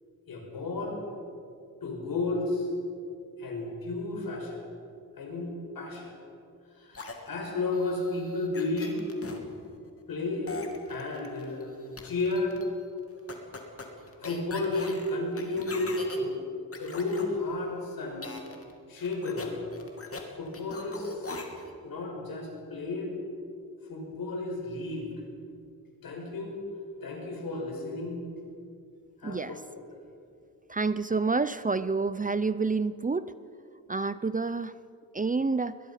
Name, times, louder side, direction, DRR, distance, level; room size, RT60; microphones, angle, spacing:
voice 1, 0.3-1.0 1.8-2.7 3.4-4.6 5.2-6.2 6.8-9.1 10.1-10.5 10.9-11.7 12.0-12.6 14.2-16.4 16.8-18.3 18.9-19.6 20.3-21.2 21.8-23.1 23.9-25.1 26.0-26.6 27.0-28.2 29.2-29.6, left 2 dB, 70° left, 1 dB, 5.9 m, -32 dB
sound 1, 6.9-9.4 10.5-11.6 12.0-12.7 13.3-16.2 16.7-17.2 18.2-18.7 19.0-20.2 20.5-21.7, left 3 dB, 40° left, 2.9 m, -41 dB
voice 2, 29.2-29.6 30.7-33.3 33.9-34.7 35.1-35.8, right 4 dB, 20° right, 14 dB, 0.6 m, -28 dB
21.5 x 21.0 x 5.8 m, 2.3 s
cardioid pair, 90°, 36 cm